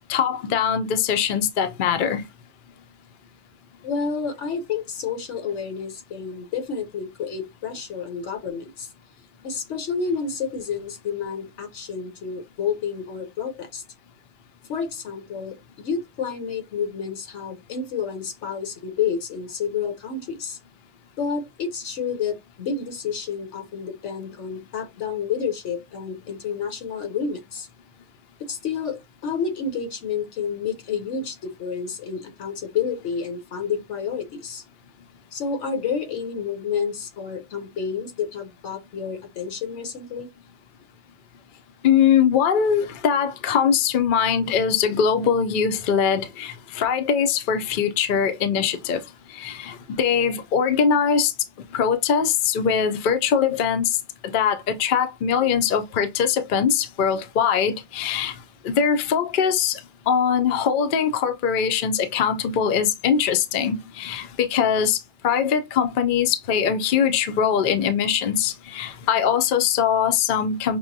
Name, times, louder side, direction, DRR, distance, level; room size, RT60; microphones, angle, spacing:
voice 1, 0.1-2.3 41.8-49.0 49.3-51.3 51.7-54.0 54.3-58.3 58.6-59.8 60.1-70.8, left 7 dB, 55° left, 0.7 m, -22 dB
voice 2, 3.8-8.9 9.4-13.8 14.7-20.6 21.2-27.7 28.5-34.6 35.3-40.3, left 6 dB, 85° left, 1.2 m, -29 dB
6.0 x 2.1 x 2.6 m
omnidirectional pair, 1.2 m